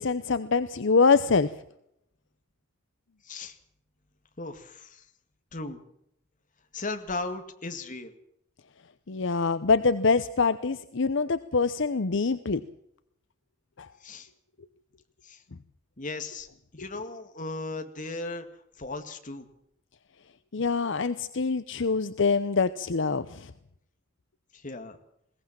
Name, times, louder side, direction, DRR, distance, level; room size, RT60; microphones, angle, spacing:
voice 1, 0.0-1.5 9.1-12.6 13.8-13.9 20.5-23.5, left 4 dB, 65° left, 13 dB, 0.7 m, -25 dB
voice 2, 3.2-3.6 4.4-5.1 5.5-5.8 6.7-8.1 14.0-14.3 15.2-15.4 16.0-16.5 16.7-18.5 18.8-19.5 24.5-25.0, left 2 dB, 40° left, 8 dB, 2.0 m, -36 dB
21.5 x 17.5 x 7.5 m, 0.75 s
head